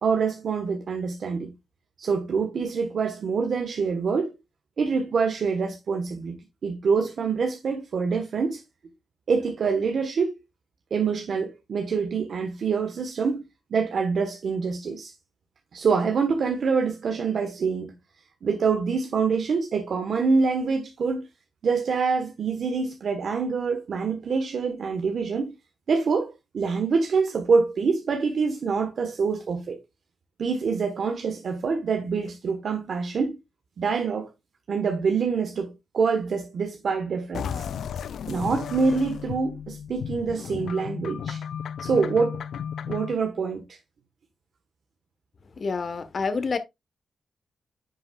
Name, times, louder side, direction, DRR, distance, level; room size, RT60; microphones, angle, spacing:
voice 1, 0.0-1.5 2.0-4.3 4.8-6.3 6.6-8.6 9.3-10.4 10.9-13.4 13.7-15.1 15.7-17.9 18.4-21.3 21.6-25.5 25.9-29.8 30.4-33.4 33.8-34.3 34.7-37.5 38.3-41.4 41.8-42.4 42.9-43.6, right 5 dB, 60° right, 1.2 m, -25 dB
sound 1, 37.3-43.1, left 8 dB, 85° left, 0.4 m, -34 dB
voice 2, 45.6-46.6, left 4 dB, 50° left, 1.2 m, -27 dB
10.0 x 5.5 x 2.4 m
wide cardioid pair, 110°, 0 cm